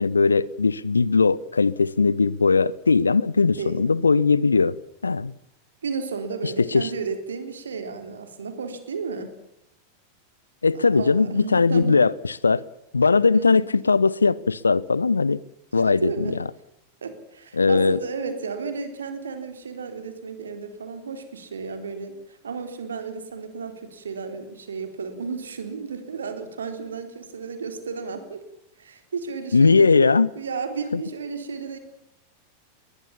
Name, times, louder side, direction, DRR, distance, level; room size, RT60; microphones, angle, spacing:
voice 1, 0.0-4.7 5.0-5.3 6.4-6.9 10.6-12.6 12.9-15.4 15.7-16.4 17.5-18.0 29.5-30.3, left 4 dB, 75° left, 22 dB, 0.8 m, -19 dB
voice 2, 3.6-4.0 5.8-9.4 10.9-12.0 13.3-13.7 15.7-16.4 17.0-28.4 28.8-30.0 30.4-31.8, right 5 dB, 70° right, 8 dB, 3.8 m, -33 dB
21.0 x 21.0 x 7.1 m, 0.84 s
figure-of-eight pair, 90°, 0 cm